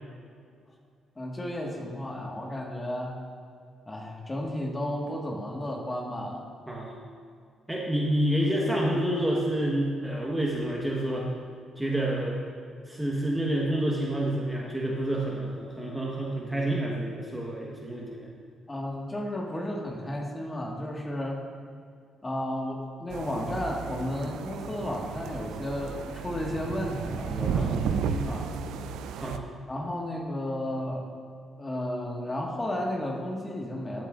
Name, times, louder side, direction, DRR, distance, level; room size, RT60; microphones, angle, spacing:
voice 1, 1.1-3.1 3.9-6.4 18.7-21.4 22.2-28.5 29.7-31.1 31.6-34.1, left 1 dB, 20° left, -1 dB, 1.6 m, -33 dB
voice 2, 7.7-11.3 11.8-12.4 12.9-18.3 27.5-27.8 29.2-29.4, right 1 dB, 10° right, -3 dB, 1.2 m, -28 dB
sound 1, 23.1-29.4, right 6 dB, 85° right, 0.4 m, -33 dB
14.0 x 7.6 x 2.5 m, 2.2 s
cardioid pair, 90°, 0 cm